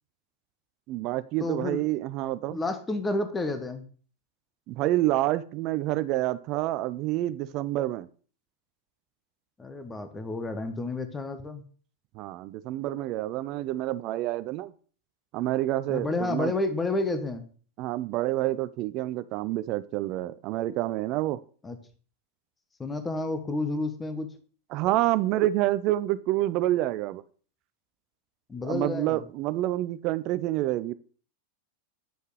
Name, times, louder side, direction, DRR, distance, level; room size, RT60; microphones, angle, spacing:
voice 1, 0.9-2.6 4.7-8.1 12.2-14.7 15.3-16.5 17.8-21.4 24.7-27.2 28.6-30.9, right 15 dB, 40° right, 0.3 m, -28 dB
voice 2, 1.4-1.8 2.5-3.9 9.6-11.6 15.9-17.5 21.6-21.8 22.8-24.3 28.5-29.2, left 2 dB, 15° left, 1.0 m, -30 dB
9.3 x 6.4 x 3.2 m
figure-of-eight pair, 90°, 0 cm